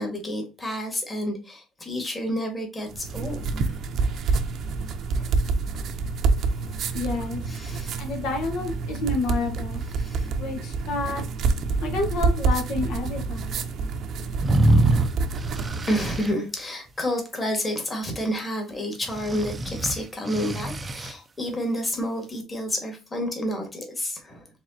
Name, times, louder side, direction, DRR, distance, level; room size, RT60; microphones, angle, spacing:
voice 1, 0.0-4.0 5.1-5.3 5.7-5.9 7.5-8.0 10.0-10.3 14.5-14.8 15.8-24.5, equal, 20° left, 1.8 m, -30 dB
sound 1, 2.9-16.4, right 4 dB, 55° right, 0.7 m, -27 dB
voice 2, 6.9-7.4 8.0-9.9 10.3-11.2 11.8-13.6, left 3 dB, 70° left, 1.3 m, -29 dB
sound 2, 14.4-16.3 19.1-21.1, right 2 dB, 20° right, 0.5 m, -24 dB
4.8 x 3.6 x 2.8 m
cardioid pair, 135°, 0 cm